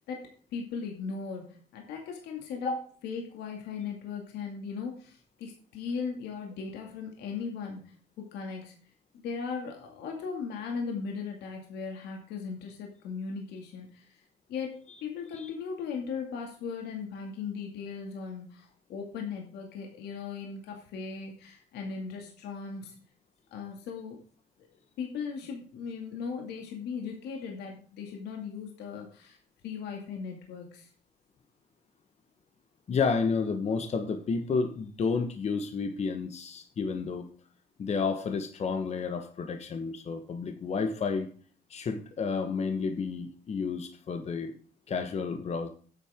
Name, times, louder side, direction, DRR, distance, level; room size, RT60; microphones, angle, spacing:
voice 1, 0.0-2.8 3.0-8.8 9.1-14.2 14.5-22.9 23.5-24.2 25.0-29.4 29.6-30.9, left 5 dB, 80° left, 1 dB, 2.4 m, -38 dB
voice 2, 32.9-37.3 37.8-41.3 41.7-44.5 44.9-45.7, left 5 dB, 40° left, 6 dB, 1.3 m, -31 dB
10.5 x 8.8 x 3.7 m, 0.43 s
cardioid pair, 110°, 17 cm